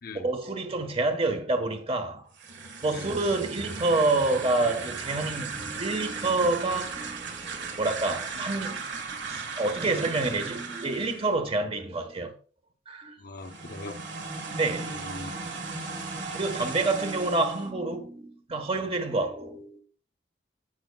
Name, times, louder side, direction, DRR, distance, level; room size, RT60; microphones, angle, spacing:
voice 1, 0.2-2.3 2.8-8.8 9.3-12.3 12.9-13.1 14.5-15.0 16.3-19.8, right 2 dB, 35° right, 1.3 m, -28 dB
sound 1, 2.3-11.3 13.4-17.7, right 4 dB, 80° right, 1.7 m, -37 dB
voice 2, 13.2-14.0 14.8-15.5, left 2 dB, 55° left, 0.8 m, -41 dB
15.0 x 6.4 x 2.3 m
head